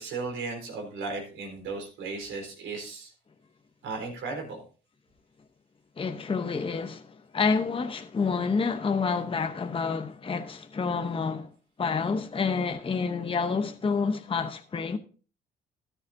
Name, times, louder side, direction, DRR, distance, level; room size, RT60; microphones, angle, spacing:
voice 1, 0.0-3.1 3.8-4.6, right 4 dB, 85° right, 4.1 m, -35 dB
voice 2, 6.0-11.5 11.8-15.0, left 5 dB, 25° left, 0.8 m, -28 dB
13.5 x 10.0 x 2.6 m
cardioid pair, 90°, 20 cm